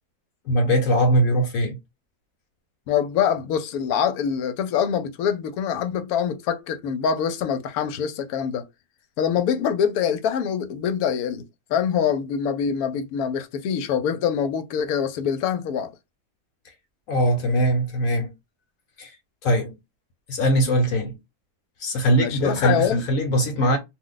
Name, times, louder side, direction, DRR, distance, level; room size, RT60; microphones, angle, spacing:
voice 1, 0.5-1.8 17.1-18.3 19.0-19.2 19.4-19.7 20.3-21.2 21.8-23.8, equal, 70° left, 1.1 m, -21 dB
voice 2, 2.9-8.6 9.2-15.9 22.2-23.0, left 8 dB, 90° left, 1.1 m, -24 dB
2.6 x 2.1 x 3.8 m
omnidirectional pair, 1.5 m